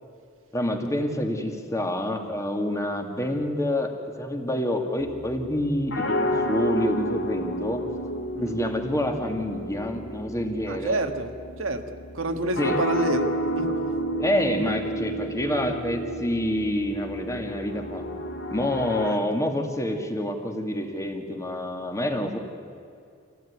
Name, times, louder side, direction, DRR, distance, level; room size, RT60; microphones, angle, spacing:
voice 1, 0.5-7.8 8.4-11.0 12.6-12.7 14.2-18.0 18.5-22.4, left 1 dB, 15° left, 4 dB, 2.2 m, -27 dB
sound 1, 5.0-19.1, equal, 70° left, 2.6 m, -31 dB
voice 2, 10.7-11.3 11.6-11.9 12.1-13.3 13.6-13.9 19.0-19.2, right 2 dB, 75° right, 7 dB, 1.6 m, -28 dB
26.0 x 16.5 x 9.6 m, 2.4 s
head